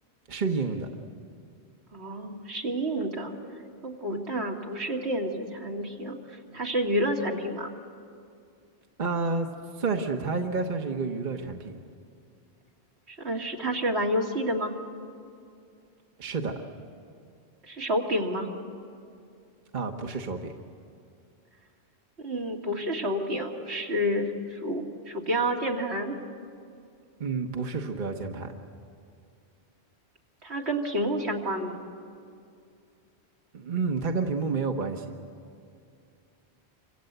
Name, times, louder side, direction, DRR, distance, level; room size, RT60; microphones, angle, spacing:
voice 1, 0.3-0.9 9.0-9.5 9.8-11.8 16.2-16.5 19.7-20.5 27.2-28.5 33.5-35.1, right 4 dB, 45° right, 3 dB, 1.4 m, -29 dB
voice 2, 1.9-3.3 3.8-6.2 6.5-7.7 13.1-14.7 17.7-18.5 22.2-26.2 30.4-31.8, equal, 75° right, 0 dB, 2.6 m, -29 dB
27.5 x 25.5 x 8.1 m, 2.4 s
omnidirectional pair, 1.1 m